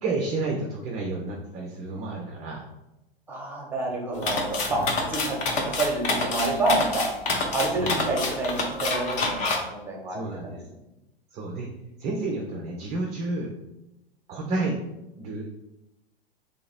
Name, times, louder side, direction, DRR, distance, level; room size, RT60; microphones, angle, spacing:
voice 1, 0.0-2.6 4.7-4.8 7.8-7.9 10.1-10.6 11.3-11.7 12.0-13.5 14.3-14.8 15.2-15.5, right 2 dB, 20° right, 0 dB, 0.5 m, -30 dB
voice 2, 3.3-4.8 5.1-7.0 7.5-10.6, right 2 dB, 5° right, -1 dB, 1.1 m, -28 dB
sound 1, 4.2-9.6, left 3 dB, 25° left, 0.7 m, -27 dB
3.2 x 2.9 x 4.2 m, 0.92 s
figure-of-eight pair, 95°, 30 cm